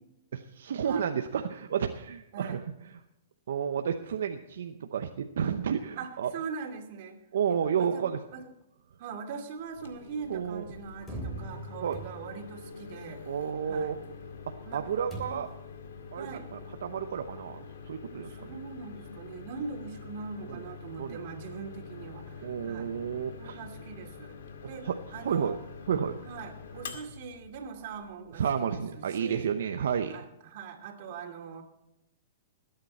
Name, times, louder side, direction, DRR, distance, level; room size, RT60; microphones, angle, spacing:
voice 1, 0.3-2.6 3.5-6.3 7.3-8.2 10.3-10.6 11.8-12.0 13.2-14.0 14.5-15.5 16.1-17.6 17.8-18.6 20.5-20.7 21.0-21.2 22.4-23.6 24.6-25.0 25.2-25.6 25.9-26.2 28.4-30.2, right 7 dB, 75° right, 6 dB, 0.8 m, -31 dB
voice 2, 6.0-7.2 7.5-8.1 8.3-8.5 9.0-13.4 13.6-14.0 14.6-14.8 15.3-15.4 16.2-16.7 18.2-22.9 23.4-24.4 24.7-25.6 26.2-29.5 30.1-31.6, right 5 dB, 55° right, 4 dB, 2.6 m, -42 dB
Microwave oven, 9.6-28.4, left 5 dB, 75° left, 2.1 m, -46 dB
sound 1, 11.1-12.6 15.1-15.7, right 2 dB, 10° left, 3.1 m, -41 dB
20.5 x 9.0 x 4.3 m, 0.87 s
hypercardioid pair, 135°, 0 cm